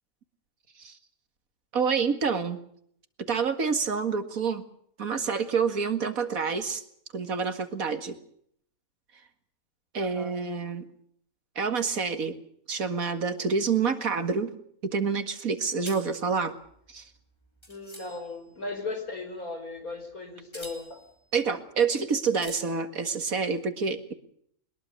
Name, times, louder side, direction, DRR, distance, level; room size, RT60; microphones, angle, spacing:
voice 1, 1.7-2.6 3.2-4.6 5.0-6.8 7.1-8.2 9.9-10.9 11.6-12.4 12.7-14.5 14.8-16.6 16.9-17.1 21.3-24.1, right 5 dB, 75° right, 9 dB, 2.4 m, -28 dB
voice 2, 10.0-10.3 17.7-21.0, left 3 dB, 80° left, 7 dB, 5.3 m, -37 dB
sound 1, 15.9-18.5 19.9-20.1 20.5-21.2 21.7-21.8 22.2-22.6, equal, 20° left, 4.0 m, -46 dB
22.0 x 21.0 x 6.7 m, 0.67 s
omnidirectional pair, 1.5 m